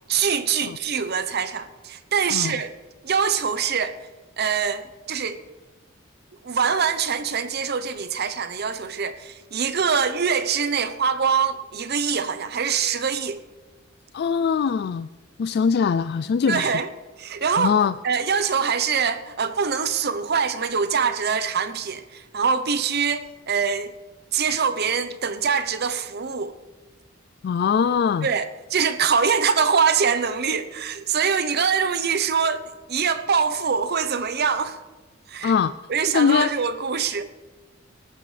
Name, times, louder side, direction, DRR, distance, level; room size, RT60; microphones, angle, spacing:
voice 1, 0.1-2.7 3.0-4.0 4.4-5.4 6.4-13.4 16.5-16.9 17.2-17.8 18.0-23.9 24.3-26.5 28.2-34.8 35.3-35.5 35.9-37.2, right 6 dB, 55° right, 0.8 m, -24 dB
voice 2, 14.1-15.1 15.4-16.8 17.6-17.9 27.4-28.3 35.4-35.7 36.1-36.5, left 6 dB, 55° left, 0.3 m, -22 dB
18.5 x 14.0 x 3.3 m
head